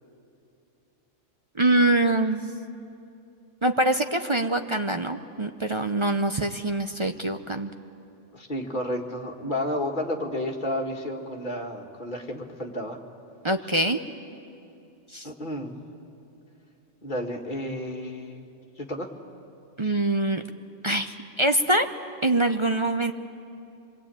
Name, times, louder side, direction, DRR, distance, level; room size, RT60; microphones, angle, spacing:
voice 1, 1.6-2.5 3.6-7.7 13.4-14.0 15.1-15.3 19.8-20.4 20.8-21.9 22.2-23.1, right 1 dB, 30° right, 6 dB, 0.7 m, -24 dB
voice 2, 8.3-13.0 15.2-15.8 17.0-18.4 18.8-19.1, left 1 dB, 40° left, 1 dB, 2.1 m, -31 dB
26.0 x 22.5 x 8.9 m, 2.7 s
omnidirectional pair, 1.3 m